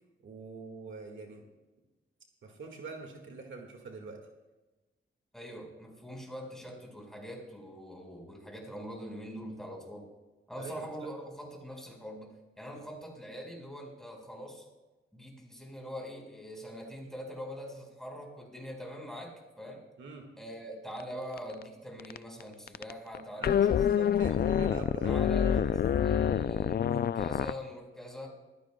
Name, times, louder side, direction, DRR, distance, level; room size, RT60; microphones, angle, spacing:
voice 1, 0.2-1.4 2.4-4.2 10.6-11.1 20.0-20.3 23.4-25.9, right 3 dB, 65° right, 2 dB, 1.9 m, -43 dB
voice 2, 5.3-10.1 10.5-12.3 12.6-14.6 15.1-19.8 20.4-23.8 24.1-24.4 25.0-25.7 26.0-28.3, equal, ahead, 0 dB, 4.7 m, -43 dB
sound 1, 21.0-21.1 21.4-21.6 22.0-22.4 22.7-27.5, left 9 dB, 50° left, 0.4 m, -27 dB
23.0 x 15.5 x 2.3 m, 1.1 s
wide cardioid pair, 100°, 21 cm